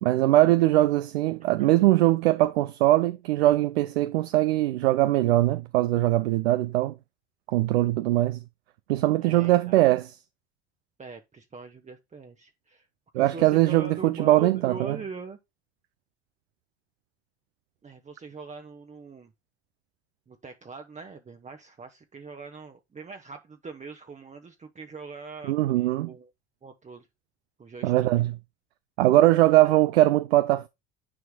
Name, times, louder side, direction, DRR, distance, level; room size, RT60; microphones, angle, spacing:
voice 1, 0.0-6.9 7.5-8.4 8.9-10.1 13.1-15.0 25.5-26.1 27.8-28.4 29.0-30.7, right 16 dB, 80° right, 0.5 m, -21 dB
voice 2, 9.2-9.8 11.0-12.9 13.1-15.4 17.8-19.3 20.3-26.3 26.6-27.1 27.6-27.9 29.6-29.8, right 4 dB, 25° right, 0.9 m, -42 dB
9.9 x 4.5 x 2.2 m
hypercardioid pair, 60°, 31 cm